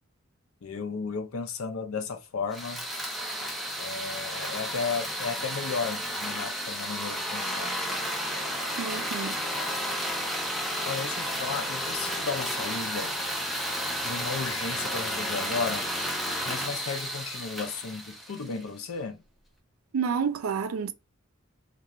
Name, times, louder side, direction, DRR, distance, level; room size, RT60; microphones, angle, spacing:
voice 1, 0.6-2.8 3.8-7.7 8.8-9.3 10.8-13.1 14.0-15.8 16.4-19.2, left 5 dB, 80° left, 0.5 m, -34 dB
sound 1, 2.5-18.7, equal, ahead, 0.4 m, -32 dB
voice 2, 8.8-9.3 19.9-20.9, right 6 dB, 75° right, 0.4 m, -29 dB
2.4 x 2.2 x 2.7 m
head